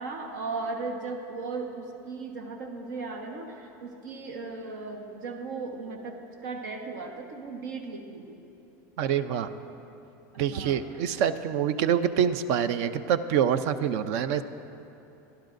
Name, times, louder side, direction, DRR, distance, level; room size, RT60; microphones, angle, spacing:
voice 1, 0.0-8.4 10.5-11.2, right 3 dB, 80° right, 2 dB, 1.3 m, -37 dB
voice 2, 9.0-9.5 10.4-14.4, right 8 dB, 60° right, 12 dB, 0.6 m, -26 dB
25.5 x 11.5 x 2.6 m, 2.9 s
supercardioid pair, 155°, 9 cm